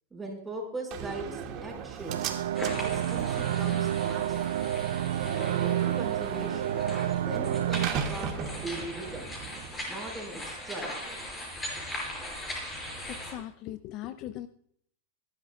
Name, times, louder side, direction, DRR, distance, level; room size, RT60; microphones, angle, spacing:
voice 1, 0.1-2.3 2.6-4.6 5.2-6.8 7.2-9.3 9.9-11.2, right 2 dB, 10° right, -1 dB, 5.6 m, -40 dB
Slam, 0.9-9.9, right 7 dB, 40° right, 2.1 m, -39 dB
sound 1, 2.1-7.9, right 11 dB, 80° right, 0.5 m, -29 dB
sound 2, 2.5-13.3, left 1 dB, 15° left, 5.9 m, -40 dB
voice 2, 13.1-14.5, left 13 dB, 45° left, 13 dB, 0.5 m, -39 dB
21.0 x 12.0 x 2.4 m, 0.68 s
supercardioid pair, 135°, 0 cm